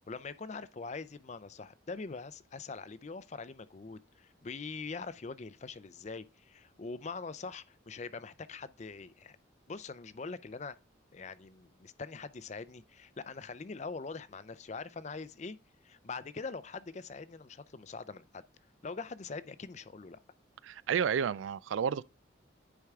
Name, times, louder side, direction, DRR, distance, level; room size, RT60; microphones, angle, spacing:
voice 1, 0.0-9.4 9.7-10.8 11.1-15.6 15.8-18.4 18.8-20.2, left 4 dB, 35° left, 0.5 m, -43 dB
voice 2, 20.6-22.0, right 7 dB, 80° right, 0.3 m, -31 dB
9.8 x 4.7 x 3.6 m
head